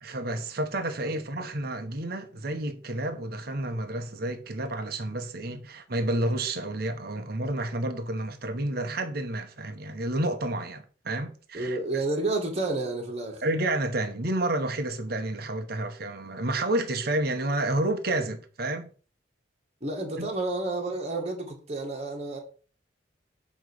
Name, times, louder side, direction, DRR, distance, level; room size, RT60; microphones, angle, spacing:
voice 1, 0.0-12.0 13.4-18.9 20.2-20.3, right 1 dB, 55° right, 1.0 m, -30 dB
voice 2, 11.5-13.4 19.8-22.4, right 2 dB, 35° right, 2.0 m, -30 dB
8.9 x 3.1 x 6.4 m
head